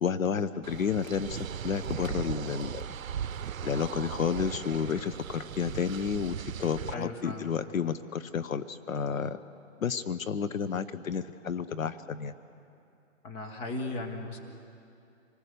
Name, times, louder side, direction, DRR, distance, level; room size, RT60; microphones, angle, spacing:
voice 1, 0.0-2.9 3.6-9.4 9.8-12.3, left 6 dB, 80° left, 13 dB, 1.0 m, -31 dB
sound 1, 0.6-6.9, right 8 dB, 85° right, 0.7 m, -38 dB
voice 2, 6.9-7.6 13.2-14.4, left 2 dB, 15° left, 4 dB, 1.4 m, -37 dB
26.5 x 20.0 x 6.9 m, 2.7 s
hypercardioid pair, 155°, 40 cm